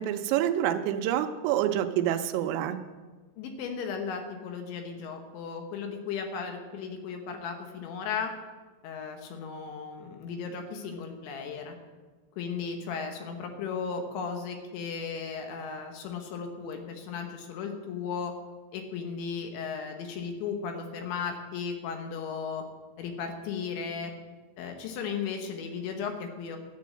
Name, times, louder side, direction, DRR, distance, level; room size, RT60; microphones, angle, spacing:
voice 1, 0.0-2.8, right 11 dB, 85° right, 8 dB, 3.4 m, -27 dB
voice 2, 3.4-8.3 8.8-11.8 12.4-18.3 18.7-22.6 23.0-24.1 24.6-26.6, left 6 dB, 70° left, 4 dB, 3.3 m, -35 dB
13.0 x 8.4 x 7.6 m, 1.3 s
omnidirectional pair, 5.8 m